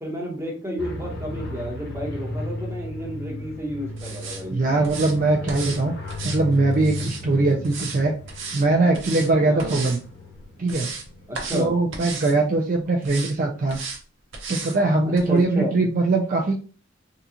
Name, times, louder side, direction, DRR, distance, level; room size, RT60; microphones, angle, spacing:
voice 1, 0.0-4.6 9.5-9.8 11.3-11.7 15.3-15.7, equal, 15° right, -1 dB, 1.0 m, -31 dB
sound 1, 0.8-11.8, left 2 dB, 55° left, 0.9 m, -36 dB
sound 2, 4.0-4.4 4.8-5.1 5.5-5.8 6.1-7.2 7.6-8.0 8.3-8.6 8.9-9.3 9.6-10.0 10.4-11.1 11.3-11.6 11.9-12.3 13.0-13.3 13.7-14.0 14.3-14.8 15.2-15.3, right 4 dB, 70° right, 0.9 m, -34 dB
voice 2, 4.5-6.0 6.2-8.1 8.5-10.0 10.6-10.9 11.5-13.8 14.5-16.5, right 2 dB, 45° right, 1 dB, 0.4 m, -21 dB
3.7 x 2.4 x 2.8 m, 0.37 s
head